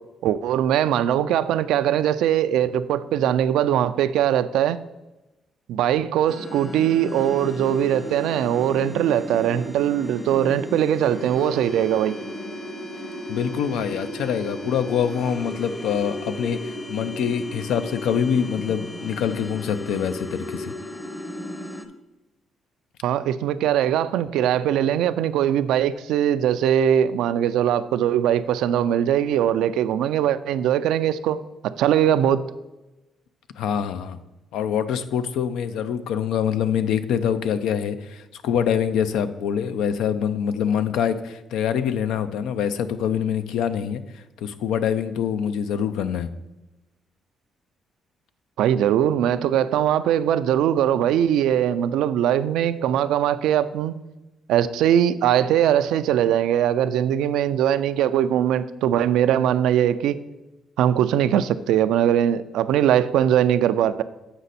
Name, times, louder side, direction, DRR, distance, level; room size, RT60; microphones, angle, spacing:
voice 1, 0.2-4.8 5.7-12.1 23.0-31.4 31.6-32.4 48.6-53.9 54.5-60.2 60.8-64.0, right 10 dB, 85° right, 13 dB, 0.3 m, -21 dB
sound 1, 6.3-21.9, left 1 dB, 25° left, 0.8 m, -35 dB
voice 2, 13.3-20.7 33.6-34.2 34.5-44.0 44.4-46.3, left 8 dB, 85° left, 11 dB, 0.5 m, -25 dB
7.9 x 5.1 x 4.1 m, 1.0 s
cardioid pair, 90°, 0 cm